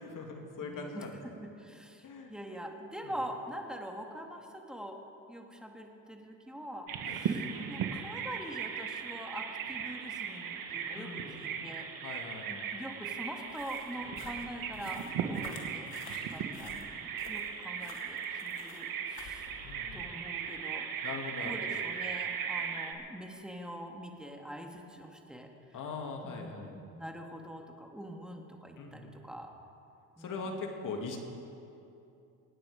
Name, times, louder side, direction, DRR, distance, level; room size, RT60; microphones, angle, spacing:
voice 1, 0.0-1.2 2.0-2.3 3.0-3.1 7.0-7.2 10.9-11.6 12.0-12.6 19.6-20.1 21.0-21.8 25.7-26.8 28.8-29.2 30.2-31.2, left 4 dB, 55° left, 2 dB, 2.5 m, -41 dB
voice 2, 0.6-5.0 5.3-11.9 12.5-19.5 19.9-20.9 21.4-25.8 26.2-29.6 30.2-30.5, equal, ahead, 2 dB, 1.9 m, -44 dB
Bird vocalization bird call bird song, 6.9-22.9, right 7 dB, 60° right, 1.5 m, -38 dB
sound 1, 13.5-20.1, left 5 dB, 80° left, 2.0 m, -51 dB
24.5 x 9.4 x 5.1 m, 2.7 s
cardioid pair, 95°, 38 cm